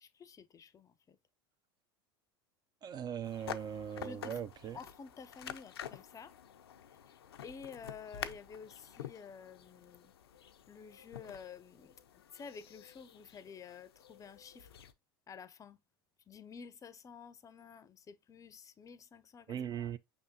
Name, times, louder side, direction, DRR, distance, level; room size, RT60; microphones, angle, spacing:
voice 1, 0.0-0.9 4.0-4.4 4.7-6.3 7.4-10.1 10.7-11.9 12.3-14.7 15.3-15.8 16.3-19.9, left 6 dB, 25° left, 0.5 m, -51 dB
voice 2, 2.8-4.8 19.5-20.0, right 9 dB, 35° right, 0.4 m, -39 dB
sound 1, 3.2-14.9, left 9 dB, 85° left, 0.5 m, -49 dB
5.5 x 3.5 x 2.6 m
hypercardioid pair, 90°, 13 cm